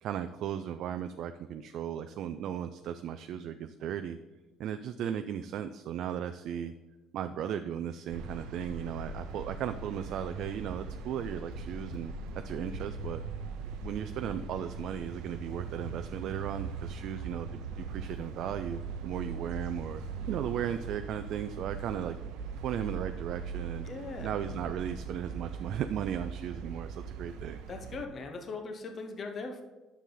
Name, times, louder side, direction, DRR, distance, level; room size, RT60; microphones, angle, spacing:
voice 1, 0.0-4.2 4.6-6.7 7.1-12.1 12.4-13.2 13.8-17.5 17.8-20.0 20.3-22.2 22.6-23.9 24.2-27.6, right 9 dB, 55° right, 8 dB, 0.4 m, -36 dB
sound 1, 8.1-28.0, right 5 dB, 85° right, 0.8 m, -40 dB
sound 2, 9.3-9.4 9.7-9.8 10.0-10.1 10.4-10.5 10.8-10.9 11.2-11.6 11.9-12.0 12.3-12.4 12.7-12.8 13.0-13.1, left 3 dB, 65° left, 1.5 m, -46 dB
voice 2, 23.8-24.3 27.7-29.6, left 3 dB, 30° left, 4 dB, 0.9 m, -40 dB
10.0 x 6.9 x 3.9 m, 1.2 s
cardioid pair, 165°, 0 cm